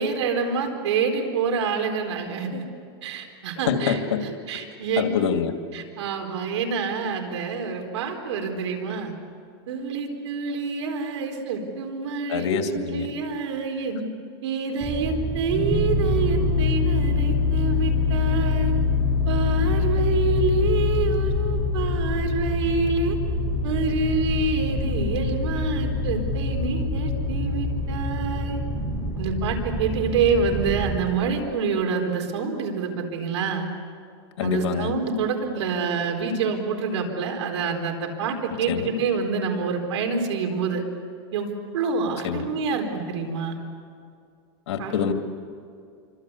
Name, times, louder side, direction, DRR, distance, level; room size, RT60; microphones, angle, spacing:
voice 1, 0.0-2.6 3.0-4.0 4.5-5.2 5.7-9.1 9.7-14.0 14.4-18.7 19.3-23.2 23.6-28.6 29.1-33.7 34.4-40.8 41.3-43.6 44.8-45.0, right 4 dB, 90° right, 4 dB, 4.4 m, -27 dB
voice 2, 3.7-4.3 5.0-5.5 12.3-13.1 34.4-34.9 38.7-38.9 42.2-42.4 44.7-45.1, left 7 dB, 90° left, 5 dB, 2.4 m, -25 dB
sound 1, 14.8-31.0, left 3 dB, 15° right, 7.3 m, -25 dB
27.5 x 25.0 x 8.4 m, 2.3 s
supercardioid pair, 150°, 14 cm